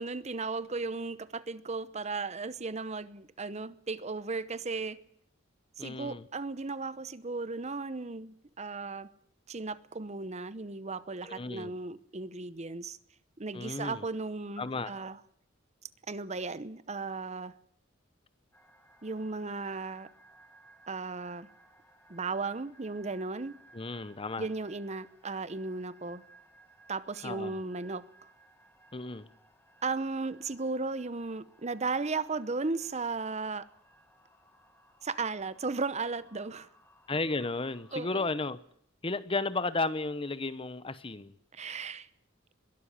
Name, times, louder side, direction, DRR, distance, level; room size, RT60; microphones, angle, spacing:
voice 1, 0.0-5.0 5.8-9.1 9.5-13.0 13.4-15.2 16.1-17.5 19.0-20.1 20.9-21.5 22.1-23.6 24.4-26.2 26.9-28.0 29.8-33.7 35.0-36.7 37.9-38.2 41.5-42.1, right 3 dB, 35° right, 0.9 m, -35 dB
voice 2, 5.8-6.2 11.2-11.7 13.5-14.1 14.6-14.9 23.7-24.5 27.2-27.6 28.9-29.3 37.1-38.6 39.0-41.3, left 3 dB, 25° left, 0.9 m, -33 dB
sound 1, 18.5-38.0, right 2 dB, 10° left, 3.9 m, -61 dB
22.0 x 12.5 x 10.0 m
head